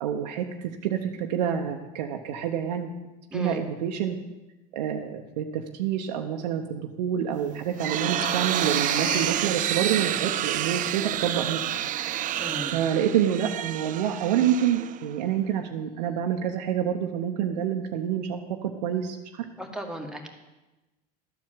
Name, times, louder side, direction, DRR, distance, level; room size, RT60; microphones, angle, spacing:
voice 1, 0.0-3.0 3.3-4.2 4.7-11.6 12.7-19.5, right 9 dB, 90° right, 3 dB, 0.8 m, -27 dB
sound 1, 7.4-15.3, right 12 dB, 40° right, 0.4 m, -29 dB
sound 2, 8.2-10.1, left 15 dB, 50° left, 0.4 m, -39 dB
voice 2, 12.4-12.8 19.6-20.3, equal, 5° right, 2 dB, 1.6 m, -35 dB
12.5 x 4.7 x 7.4 m, 1.1 s
supercardioid pair, 95°, 21 cm